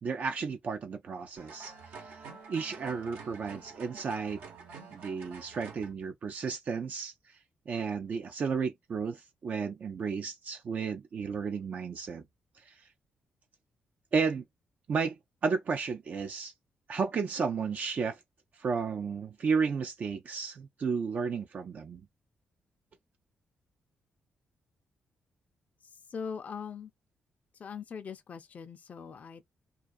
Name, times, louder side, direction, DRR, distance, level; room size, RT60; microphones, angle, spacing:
voice 1, 0.0-2.2 2.5-4.4 4.9-7.4 7.7-12.2 12.6-12.8 14.1-14.4 14.9-16.5 16.9-18.2 18.5-22.0, right 5 dB, 55° right, 0.4 m, -33 dB
sound 1, 1.4-5.9, right 5 dB, 85° right, 1.0 m, -48 dB
voice 2, 25.8-26.9 27.5-29.5, left 6 dB, 50° left, 0.4 m, -41 dB
2.3 x 2.3 x 2.5 m
cardioid pair, 75°, 3 cm